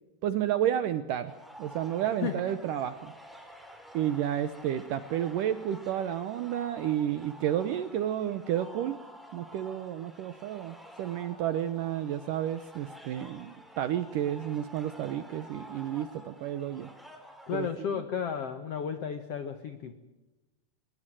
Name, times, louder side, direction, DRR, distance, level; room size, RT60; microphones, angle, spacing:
voice 1, 0.2-1.3 1.6-3.1 3.9-9.0 9.3-16.9 17.5-18.0, right 11 dB, 75° right, 12 dB, 2.0 m, -31 dB
sound 1, 1.3-17.7, equal, ahead, 3.0 m, -50 dB
voice 2, 2.2-2.5 17.5-19.9, left 7 dB, 80° left, 10 dB, 1.3 m, -33 dB
22.0 x 21.5 x 7.6 m, 1.1 s
omnidirectional pair, 4.8 m